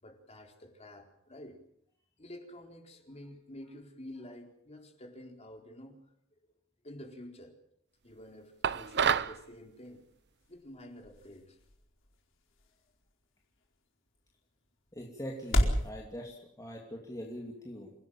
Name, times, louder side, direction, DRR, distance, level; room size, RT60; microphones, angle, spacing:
voice 1, 0.0-1.6 2.2-6.0 6.8-7.6 8.0-10.0 10.5-11.6, left 1 dB, 30° left, 3 dB, 4.2 m, -49 dB
sound 1, 8.6-9.4, right 7 dB, 55° right, 0.8 m, -28 dB
sound 2, 9.6-15.9, equal, 65° left, 4.7 m, -36 dB
voice 2, 14.9-17.9, equal, 15° left, -1 dB, 2.9 m, -42 dB
28.0 x 17.5 x 7.5 m, 0.73 s
head